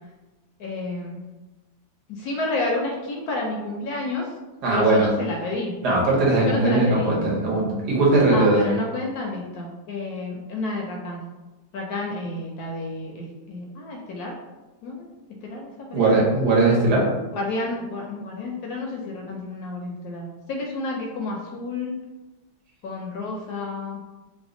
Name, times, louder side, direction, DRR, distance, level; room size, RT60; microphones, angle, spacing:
voice 1, 0.6-1.2 2.1-4.3 4.7-5.7 6.5-7.1 8.3-11.2 11.7-14.3 14.8-15.1 15.4-16.2 17.3-22.0 22.8-24.0, left 2 dB, 70° left, 0 dB, 1.0 m, -30 dB
voice 2, 4.6-5.1 5.8-8.7 15.9-17.1, right 2 dB, 70° right, -4 dB, 1.4 m, -19 dB
3.3 x 2.0 x 3.6 m, 1.1 s
omnidirectional pair, 1.9 m